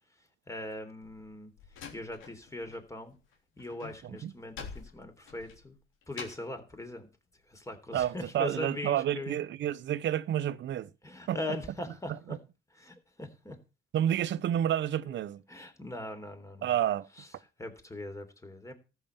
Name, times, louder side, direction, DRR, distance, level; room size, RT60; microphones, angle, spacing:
voice 1, 0.5-1.5 1.9-3.2 3.6-5.8 6.1-7.1 7.5-9.4 11.0-12.4 12.7-13.6 15.0-15.2 15.5-16.8 17.2-17.3 17.6-18.7, left 1 dB, 15° left, 3.4 m, -40 dB
Slam, 1.0-2.8 3.1-6.6, left 6 dB, 85° left, 3.4 m, -47 dB
voice 2, 7.9-10.9 11.3-11.4 13.9-15.4 16.6-17.1, right 11 dB, 70° right, 0.8 m, -29 dB
13.5 x 7.1 x 7.2 m
cardioid pair, 90°, 20 cm